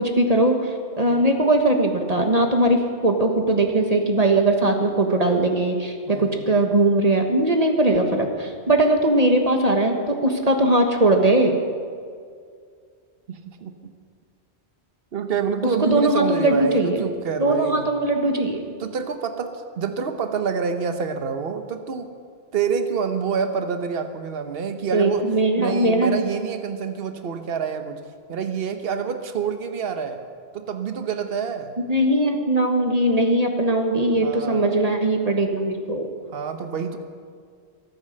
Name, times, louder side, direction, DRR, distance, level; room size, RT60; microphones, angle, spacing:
voice 1, 0.0-11.6 15.8-17.0 17.4-18.6 24.9-26.3 31.8-36.1, right 1 dB, 35° right, 4 dB, 1.4 m, -20 dB
voice 2, 1.0-1.3 6.1-6.5 13.3-13.9 15.1-17.9 18.8-22.1 22.5-25.3 25.6-28.0 28.3-30.2 30.5-31.7 34.2-34.7 36.3-37.0, right 6 dB, 60° right, 8 dB, 1.2 m, -27 dB
23.5 x 9.2 x 6.6 m, 2.1 s
omnidirectional pair, 1.1 m